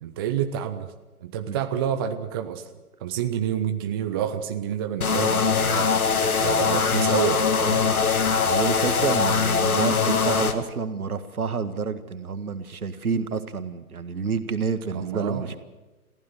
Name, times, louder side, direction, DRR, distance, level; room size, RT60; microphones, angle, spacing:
voice 1, 0.0-0.9 1.2-2.7 3.0-6.1 6.4-7.9 14.9-15.6, right 9 dB, 15° right, 8 dB, 0.6 m, -28 dB
sound 1, 5.0-10.5, left 5 dB, 70° left, 2.0 m, -22 dB
voice 2, 8.4-15.6, right 5 dB, 70° right, 10 dB, 1.9 m, -29 dB
23.0 x 15.0 x 8.0 m, 1.2 s
figure-of-eight pair, 130°, 45 cm